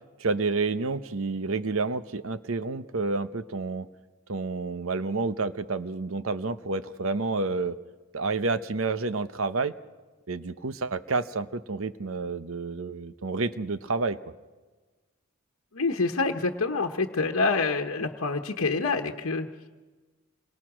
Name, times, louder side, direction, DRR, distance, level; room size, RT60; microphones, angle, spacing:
voice 1, 0.2-3.9 4.3-7.8 8.1-9.7 10.3-14.2, right 3 dB, 70° right, 13 dB, 0.9 m, -29 dB
voice 2, 15.7-19.5, left 3 dB, 75° left, 2 dB, 1.1 m, -27 dB
27.0 x 23.0 x 6.2 m, 1.3 s
head